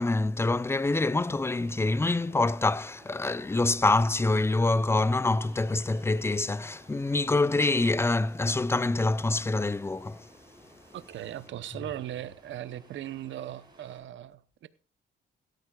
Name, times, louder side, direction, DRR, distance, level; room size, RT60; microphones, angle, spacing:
voice 1, 0.0-10.3, left 2 dB, 10° left, 0.6 m, -26 dB
Ocean, 1.4-14.0, right 2 dB, 20° right, 5.8 m, -57 dB
voice 2, 10.9-14.7, right 12 dB, 70° right, 0.9 m, -38 dB
17.0 x 13.0 x 2.4 m
cardioid pair, 90°, 20 cm